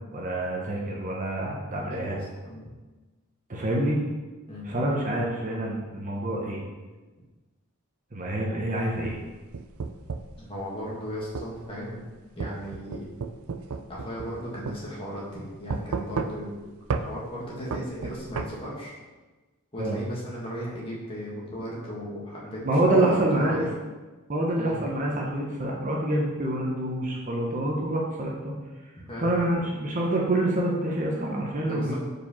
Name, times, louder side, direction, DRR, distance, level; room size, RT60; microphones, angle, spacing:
voice 1, 0.0-2.2 3.5-4.0 4.6-6.6 8.1-9.2 19.8-20.0 22.6-23.7 24.3-28.5 29.2-31.9, right 1 dB, 35° right, -2 dB, 1.0 m, -26 dB
sound 1, 8.9-10.4 11.3-11.5 12.4-14.4 14.7-14.8 15.7-16.6 16.9-17.1 17.7-18.5, right 4 dB, 75° right, 0.4 m, -32 dB
voice 2, 10.4-12.0 12.4-13.1 13.9-16.5 17.0-18.9 19.7-22.6 23.0-23.7 24.6-24.7 29.0-29.3 31.7-32.0, equal, 25° left, -6 dB, 1.9 m, -36 dB
5.1 x 4.7 x 5.5 m, 1.2 s
head